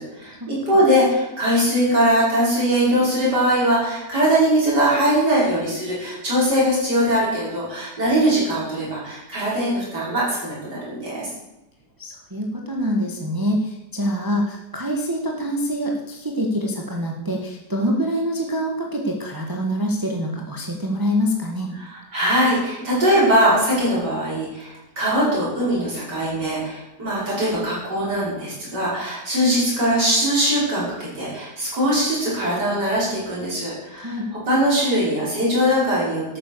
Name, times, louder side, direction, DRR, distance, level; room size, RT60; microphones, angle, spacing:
voice 1, 0.0-11.3 21.8-36.4, equal, 90° right, -7 dB, 6.2 m, -21 dB
voice 2, 12.0-21.7 33.9-34.3, equal, 15° right, 0 dB, 1.4 m, -25 dB
12.0 x 9.1 x 6.8 m, 0.92 s
omnidirectional pair, 1.8 m